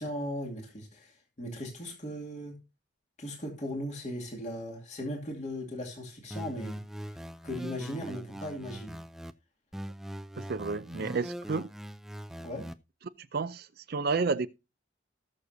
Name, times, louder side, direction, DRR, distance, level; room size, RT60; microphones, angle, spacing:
voice 1, 0.0-2.6 3.2-7.1 7.4-9.0 12.4-12.7, equal, 35° left, 2.5 m, -38 dB
sound 1, 6.3-9.3 9.7-12.7, equal, ahead, 0.4 m, -42 dB
voice 2, 10.4-11.7 13.2-14.5, right 4 dB, 55° right, 0.5 m, -31 dB
19.0 x 6.5 x 2.7 m
head